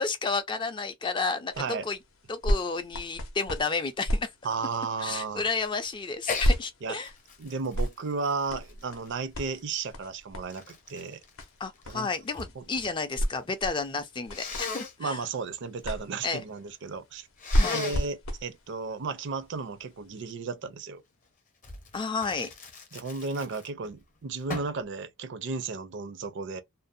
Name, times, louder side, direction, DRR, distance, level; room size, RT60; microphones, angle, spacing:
voice 1, 0.0-2.0 2.3-4.3 5.0-7.1 11.6-15.2 16.2-16.4 17.6-17.8 21.9-22.5, left 4 dB, 20° left, 0.3 m, -31 dB
sound 1, 1.5-20.3 21.0-21.1, equal, 65° left, 0.6 m, -34 dB
voice 2, 1.6-1.9 4.4-5.4 6.8-7.0 7.4-11.2 11.9-12.1 12.6-12.7 15.0-17.3 17.6-21.0 22.9-26.6, right 4 dB, 55° right, 0.4 m, -34 dB
Sneeze, 6.2-6.6 7.0-9.4 10.1-12.5 12.8-13.4 14.3-14.9 17.4-18.1 21.6-23.9 24.5-24.8, left 4 dB, 35° left, 0.7 m, -38 dB
2.5 x 2.0 x 2.5 m
head